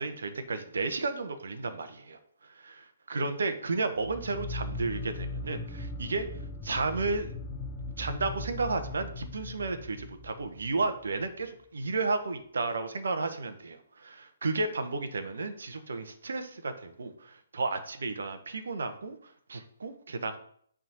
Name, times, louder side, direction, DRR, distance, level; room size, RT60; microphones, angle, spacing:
voice 1, 0.0-6.3 6.6-7.3 8.0-20.4, right 3 dB, 70° right, 8 dB, 1.1 m, -33 dB
sound 1, 4.0-11.3, left 2 dB, 20° left, 0.9 m, -39 dB
7.4 x 3.8 x 5.6 m, 0.62 s
figure-of-eight pair, 135°, 0 cm